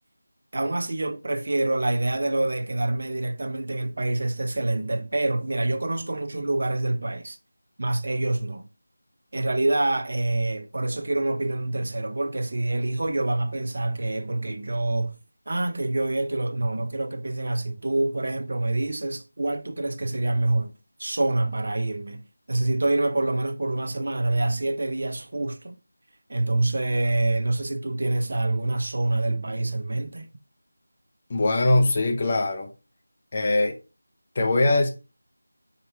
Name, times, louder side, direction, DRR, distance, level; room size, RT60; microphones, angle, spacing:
voice 1, 0.5-7.4 7.8-8.6 9.3-15.2 15.5-20.7 21.0-22.2 22.5-25.8 26.3-30.3, right 2 dB, 55° right, 0.5 m, -26 dB
voice 2, 31.3-32.7 33.3-33.8 34.4-34.9, left 2 dB, 30° left, 0.5 m, -21 dB
4.4 x 2.8 x 3.3 m
figure-of-eight pair, 170°, 0 cm